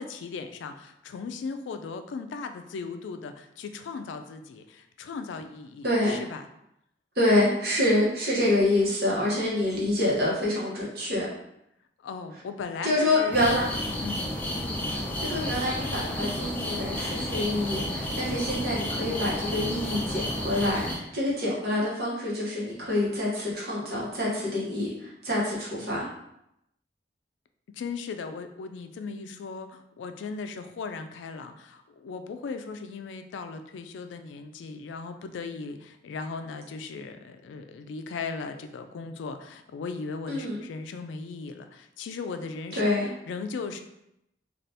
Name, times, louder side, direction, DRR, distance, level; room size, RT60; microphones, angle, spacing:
voice 1, 0.0-6.4 12.0-13.4 14.0-14.3 27.7-43.0 43.3-43.8, left 4 dB, 85° left, 8 dB, 0.3 m, -37 dB
voice 2, 5.8-6.2 7.2-11.3 12.8-13.7 14.5-14.7 15.2-26.1 40.3-40.6 42.7-43.1, left 1 dB, 55° right, -5 dB, 1.0 m, -26 dB
sound 1, 13.3-20.9, left 1 dB, 10° left, 0.4 m, -31 dB
3.3 x 2.4 x 2.7 m, 0.81 s
head